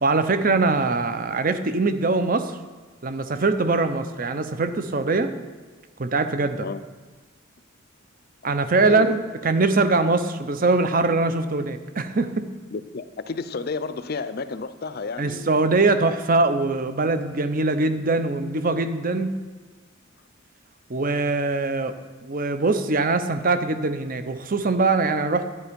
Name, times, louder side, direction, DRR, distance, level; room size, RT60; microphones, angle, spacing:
voice 1, 0.0-2.6 3.0-5.3 6.0-6.7 8.4-12.5 15.2-19.3 20.9-22.0 22.2-25.5, right 3 dB, 45° right, 0.7 m, -22 dB
voice 2, 8.8-9.2 12.7-15.5, left 4 dB, 50° left, 0.5 m, -31 dB
11.5 x 9.6 x 5.2 m
head